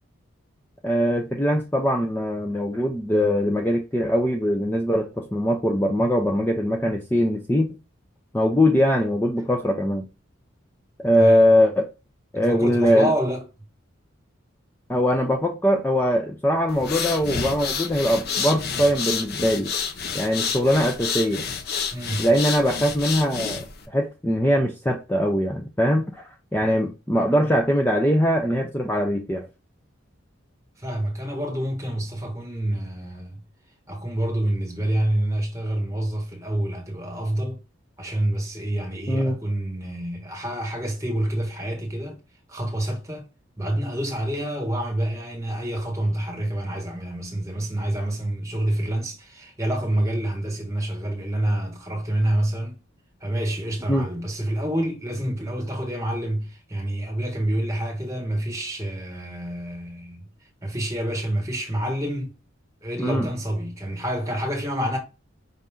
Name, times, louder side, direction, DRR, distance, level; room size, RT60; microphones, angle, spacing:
voice 1, 0.8-7.8 8.3-10.0 11.0-11.9 12.3-13.1 14.9-19.7 20.1-21.4 22.2-29.5 39.1-39.4 53.9-54.1 63.0-63.3, equal, 10° left, 0.5 m, -21 dB
voice 2, 12.3-13.5 21.9-22.3 30.8-33.4 33.9-37.6 38.0-42.2 42.5-43.3 43.6-52.8 53.2-60.3 60.6-62.3 62.8-65.0, right 1 dB, 15° right, 1.4 m, -27 dB
sound 1, 16.7-23.8, left 6 dB, 50° left, 0.7 m, -29 dB
5.5 x 2.6 x 3.6 m
head